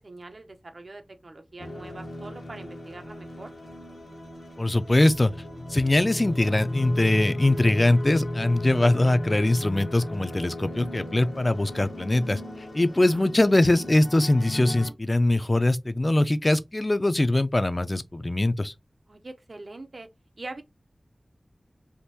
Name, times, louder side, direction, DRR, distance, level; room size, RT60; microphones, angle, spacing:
voice 1, 0.0-3.5 12.9-13.3 19.1-20.1 20.4-20.6, right 2 dB, 65° right, 0.6 m, -43 dB
sound 1, 1.6-14.9, left 1 dB, 85° left, 1.0 m, -35 dB
voice 2, 4.6-5.3 5.7-12.4 12.7-18.7, left 1 dB, 35° left, 0.4 m, -22 dB
3.5 x 2.5 x 2.7 m
wide cardioid pair, 60°, 0 cm